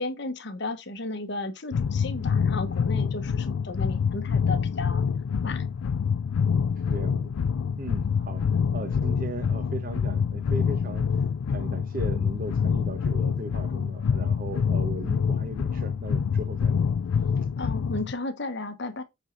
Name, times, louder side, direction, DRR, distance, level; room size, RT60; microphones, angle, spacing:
voice 1, 0.0-5.0 5.4-5.6 17.6-19.0, left 2 dB, 55° left, 1.1 m, -34 dB
sound 1, 1.7-18.1, left 6 dB, 85° left, 0.4 m, -26 dB
voice 2, 6.9-7.3 7.8-8.5 8.7-11.1 11.5-16.8, right 2 dB, 45° right, 1.0 m, -37 dB
8.2 x 4.2 x 3.9 m
head